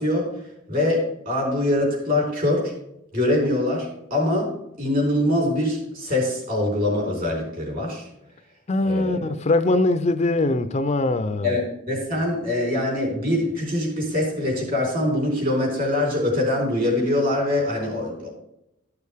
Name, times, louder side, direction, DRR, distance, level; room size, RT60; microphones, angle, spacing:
voice 1, 0.0-2.7 3.1-4.5 4.8-8.1 8.8-9.3 11.4-18.3, left 1 dB, 45° right, 4.2 m, -23 dB
voice 2, 8.7-11.6, left 2 dB, 30° left, 0.4 m, -22 dB
13.5 x 6.4 x 3.5 m
head